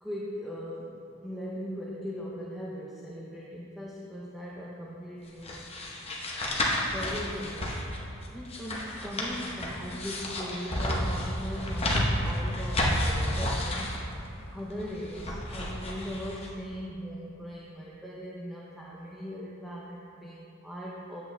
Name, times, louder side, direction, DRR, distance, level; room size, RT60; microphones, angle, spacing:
voice 1, 0.0-5.6 6.9-7.8 8.3-14.0 14.5-21.2, equal, ahead, -6 dB, 0.6 m, -39 dB
sound 1, 5.4-16.5, left 1 dB, 30° left, 0.9 m, -31 dB
9.3 x 8.0 x 2.2 m, 2.6 s
head